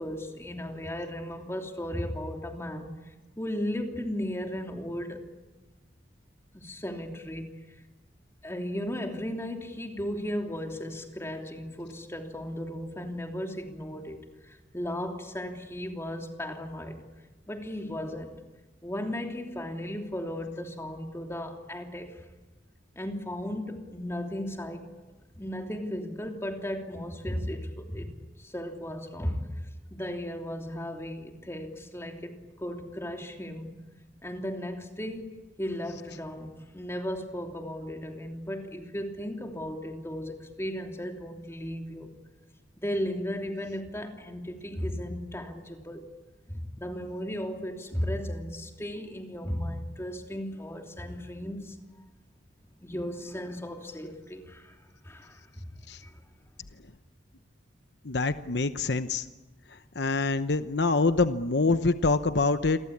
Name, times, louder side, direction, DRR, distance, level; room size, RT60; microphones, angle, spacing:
voice 1, 0.0-5.2 6.5-7.5 8.4-17.0 17.5-18.4 18.8-22.2 22.9-24.9 25.3-29.5 29.9-33.7 34.2-42.1 42.8-46.1 46.5-51.8 52.8-55.7 56.0-56.2, equal, 15° left, 3 dB, 3.1 m, -35 dB
voice 2, 58.0-59.3 59.7-62.8, left 3 dB, 65° left, 10 dB, 0.9 m, -25 dB
29.0 x 23.5 x 8.6 m, 1.2 s
head